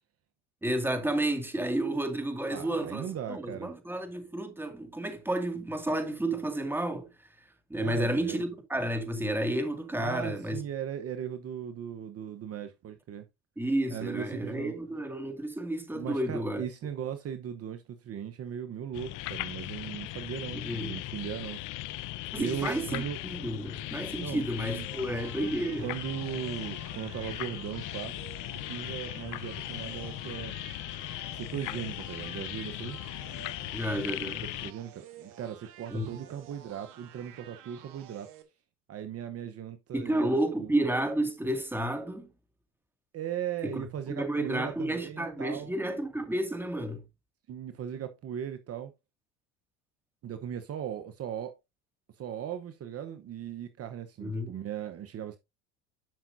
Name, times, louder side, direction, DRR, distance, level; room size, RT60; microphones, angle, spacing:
voice 1, 0.6-7.1 7.7-10.6 13.6-16.6 20.5-20.9 22.3-25.9 33.7-34.4 35.9-36.2 39.9-42.3 43.6-47.0 54.2-54.5, right 1 dB, 5° right, 2.2 m, -31 dB
voice 2, 2.5-3.7 7.8-8.4 10.0-13.3 13.9-14.7 15.9-21.6 22.4-23.2 24.2-25.2 25.8-28.1 28.7-30.5 31.3-33.0 34.2-34.3 34.6-38.3 38.9-40.7 43.1-45.7 47.5-48.9 50.2-51.6 52.2-55.4, right 9 dB, 40° right, 1.0 m, -38 dB
sound 1, 18.9-34.7, left 16 dB, 60° left, 0.8 m, -38 dB
sound 2, 24.7-38.4, right 10 dB, 65° right, 2.1 m, -52 dB
12.0 x 5.8 x 2.7 m
supercardioid pair, 100°, 36 cm